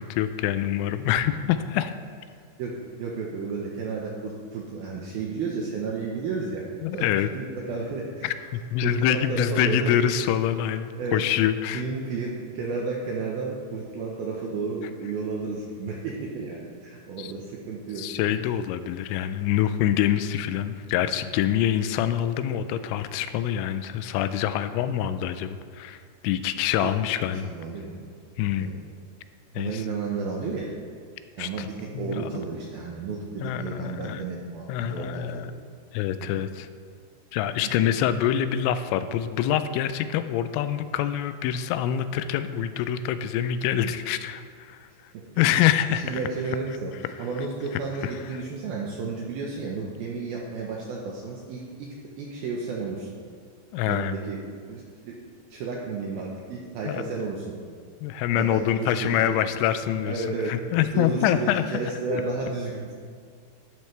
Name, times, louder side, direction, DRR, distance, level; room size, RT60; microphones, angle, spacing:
voice 1, 0.0-1.9 6.8-7.3 8.2-11.8 17.2-17.3 18.0-27.5 28.4-28.7 29.5-29.8 31.4-31.7 31.9-32.2 33.4-34.2 34.7-35.5 35.9-36.7 37.3-44.9 45.4-46.2 53.7-54.1 56.9-57.0 58.0-61.6 62.1-62.2, left 10 dB, 85° left, 11 dB, 3.0 m, -25 dB
voice 2, 3.0-6.6 6.9-7.1 7.4-8.3 8.8-9.9 11.0-11.3 11.7-18.1 26.8-26.9 27.4-28.1 28.4-28.7 29.5-30.7 31.3-35.5 36.2-36.3 37.6-37.7 45.9-46.9 47.2-51.9 52.2-53.1 53.8-54.4 54.7-55.2 55.5-57.5 58.4-59.4 60.0-60.6 60.9-62.9, right 4 dB, 75° right, -2 dB, 2.3 m, -32 dB
12.0 x 11.5 x 3.3 m, 2.1 s
omnidirectional pair, 5.4 m